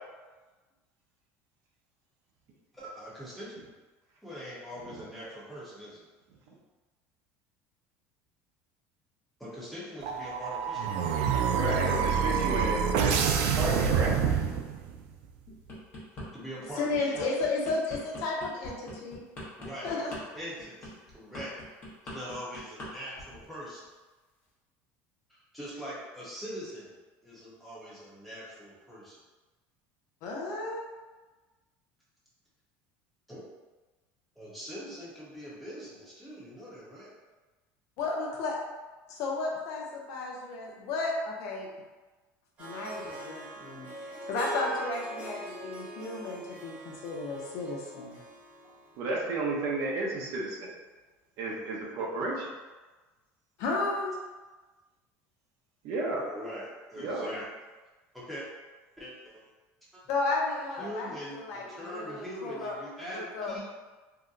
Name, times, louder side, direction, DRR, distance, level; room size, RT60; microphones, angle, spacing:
voice 1, 2.7-3.5 4.2-6.1 9.4-11.5 16.3-17.3 19.6-21.5 22.0-23.9 25.5-27.0 27.2-29.2 33.3-33.4 34.4-37.1 48.6-48.7 56.3-57.5 58.1-58.4 59.0-59.4 59.9-60.0 60.8-63.7, equal, ahead, -9 dB, 0.9 m, -42 dB
sound 1, 10.0-15.0, right 7 dB, 75° right, 0.3 m, -27 dB
voice 2, 11.5-14.1 49.0-50.7 51.4-52.5 55.8-56.2 57.0-57.3, right 2 dB, 60° right, -3 dB, 0.7 m, -32 dB
sound 2, 15.5-16.3 16.7-22.9 23.2-23.5, left 1 dB, 30° left, 1.0 m, -42 dB
voice 3, 16.8-19.2 19.8-20.1 30.2-30.8 38.0-38.6 39.1-41.7 42.6-48.2 53.6-54.2 60.1-62.8 63.0-63.5, left 3 dB, 60° left, -1 dB, 0.6 m, -33 dB
Harp, 42.6-49.7, right 2 dB, 25° right, 1.1 m, -42 dB
2.8 x 2.1 x 3.7 m, 1.2 s
cardioid pair, 150°, 6 cm